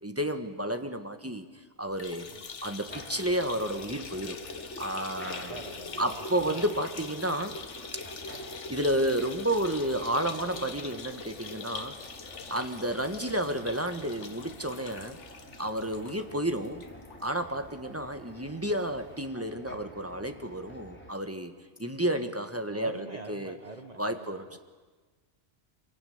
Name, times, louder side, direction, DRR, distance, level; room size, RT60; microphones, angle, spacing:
voice 1, 0.0-2.3 2.6-4.4 4.8-5.5 6.0-7.6 7.9-11.9 12.5-15.2 15.6-16.8 17.2-21.5 21.8-23.6 24.0-24.6, right 1 dB, 10° right, 7 dB, 1.4 m, -31 dB
sound 1, 1.9-17.3 17.6-17.7 18.1-18.2 19.2-19.3, left 4 dB, 75° left, 1.7 m, -43 dB
sound 2, 2.9-21.1, equal, 10° left, 3.8 m, -50 dB
voice 2, 5.3-6.8 12.8-13.0 19.4-19.6 22.7-24.6, right 3 dB, 35° right, 5 dB, 1.4 m, -45 dB
25.5 x 23.0 x 9.5 m, 1.3 s
omnidirectional pair, 1.2 m